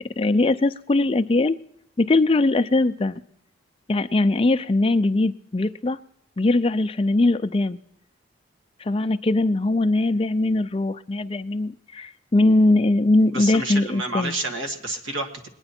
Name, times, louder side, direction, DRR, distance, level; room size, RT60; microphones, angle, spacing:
voice 1, 0.2-1.5 2.0-3.2 3.9-6.0 6.4-7.8 8.8-14.3, left 2 dB, 25° left, 10 dB, 0.4 m, -21 dB
voice 2, 13.3-15.5, right 2 dB, 70° right, 5 dB, 1.7 m, -29 dB
21.0 x 9.8 x 4.3 m, 0.76 s
head